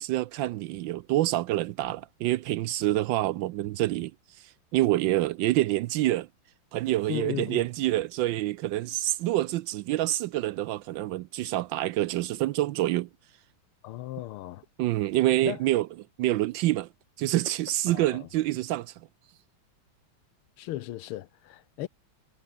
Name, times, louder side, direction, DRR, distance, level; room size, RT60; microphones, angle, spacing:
voice 1, 0.0-4.1 4.4-6.3 6.7-13.1 14.8-15.9 16.2-16.9 17.2-18.9, right 15 dB, 75° right, 1.1 m, -27 dB
voice 2, 7.1-7.7 13.8-14.6 15.4-15.6 17.9-18.3 20.6-21.9, left 14 dB, 90° left, 1.7 m, -36 dB
omnidirectional pair, 2.3 m